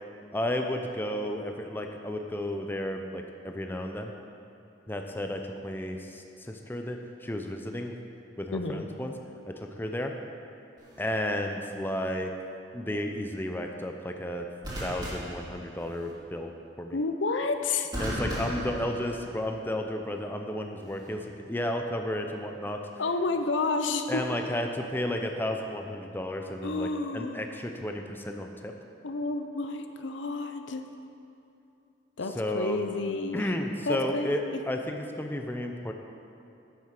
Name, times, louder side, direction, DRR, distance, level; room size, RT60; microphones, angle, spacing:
voice 1, 0.3-4.1 4.9-7.9 8.4-9.1 9.5-10.1 11.0-12.3 12.7-14.5 14.8-16.5 16.8-17.0 18.0-22.8 24.1-26.9 27.1-28.7 32.4-32.8 33.3-35.9, left 1 dB, 10° left, 4 dB, 0.6 m, -32 dB
voice 2, 8.5-8.8 16.9-17.9 23.0-24.2 26.6-27.4 29.0-30.8 32.2-33.5 33.9-34.6, left 3 dB, 85° left, 7 dB, 0.7 m, -30 dB
sound 1, 10.8-11.1 14.6-16.1 17.9-19.6 20.8-21.1, equal, 25° right, 2.8 m, -36 dB
9.5 x 7.8 x 5.9 m, 2.8 s
head